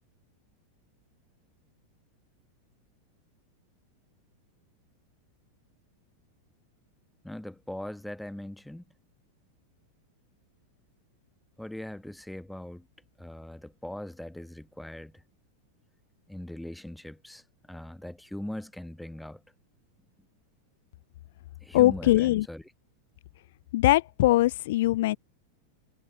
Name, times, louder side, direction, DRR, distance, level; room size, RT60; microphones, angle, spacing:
voice 1, 7.2-8.8 11.6-12.8 13.2-15.2 16.3-17.4 17.7-19.4 21.6-22.6, left 1 dB, 5° left, 1.4 m, -40 dB
voice 2, 21.7-22.5 23.7-25.2, left 16 dB, 55° left, 0.6 m, -21 dB
figure-of-eight pair, 90°, 0 cm